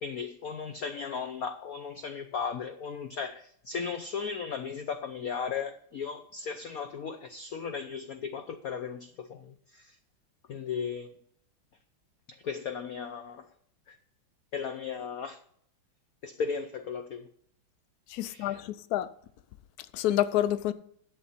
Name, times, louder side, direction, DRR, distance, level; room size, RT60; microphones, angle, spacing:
voice 1, 0.0-10.0 10.5-11.1 12.3-13.5 13.9-14.0 14.5-15.4 16.2-17.3 18.2-18.6, left 6 dB, 65° left, 0.9 m, -36 dB
voice 2, 18.1-19.1 19.9-20.7, left 12 dB, 90° left, 0.8 m, -28 dB
11.5 x 8.0 x 4.2 m
omnidirectional pair, 2.2 m